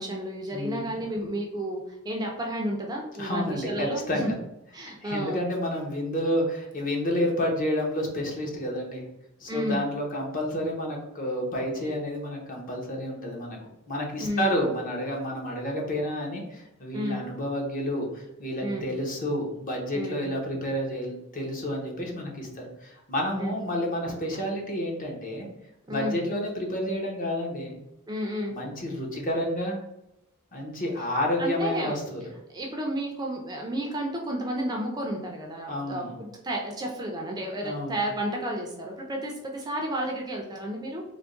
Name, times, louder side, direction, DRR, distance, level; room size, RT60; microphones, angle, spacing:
voice 1, 0.0-4.4 4.7-5.4 9.5-9.8 14.2-14.6 16.9-17.2 18.6-18.8 19.9-20.2 23.4-23.6 25.9-26.2 28.1-28.6 31.4-32.0 32.5-41.0, right 1 dB, 20° right, 0 dB, 0.5 m, -32 dB
voice 2, 0.5-0.9 3.2-4.3 4.8-9.0 9.4-13.6 13.9-25.5 25.9-27.8 28.5-29.8 30.5-32.2 35.7-36.2 37.6-38.0, left 1 dB, 40° left, -1 dB, 0.9 m, -30 dB
3.4 x 2.1 x 3.7 m, 0.85 s
head